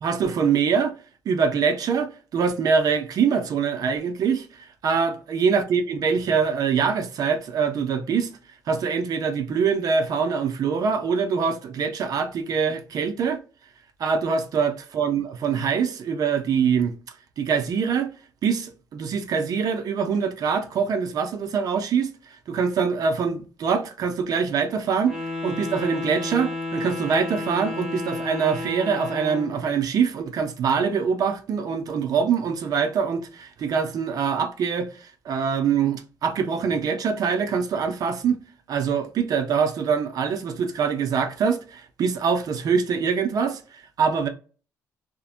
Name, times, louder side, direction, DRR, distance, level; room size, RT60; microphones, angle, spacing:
voice 1, 0.0-1.0 1.3-8.3 8.7-13.4 14.0-17.0 17.4-18.1 18.4-22.1 22.5-25.2 25.4-38.4 38.7-44.3, right 6 dB, 55° right, 0.5 m, -24 dB
Wind instrument woodwind instrument, 25.0-29.6, left 2 dB, 10° right, 1.5 m, -31 dB
2.6 x 2.1 x 2.4 m
cardioid pair, 85°, 7 cm